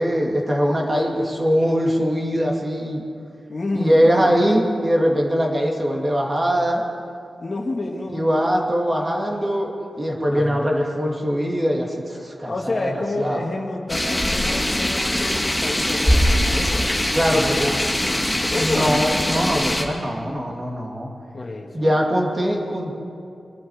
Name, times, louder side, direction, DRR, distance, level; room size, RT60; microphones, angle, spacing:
voice 1, 0.0-3.0 3.7-6.8 8.1-12.9 13.2-13.4 17.1-17.7 18.6-21.1 21.7-22.9, equal, 30° right, -1 dB, 2.3 m, -21 dB
voice 2, 3.5-4.4 7.4-8.3 10.3-10.6 12.5-17.0 17.3-17.8 18.5-19.0 21.3-22.0, left 2 dB, 40° left, 0 dB, 1.8 m, -29 dB
sound 1, 13.9-19.8, left 1 dB, 10° left, 1.8 m, -22 dB
24.0 x 11.5 x 4.9 m, 2.5 s
wide cardioid pair, 105°, 0 cm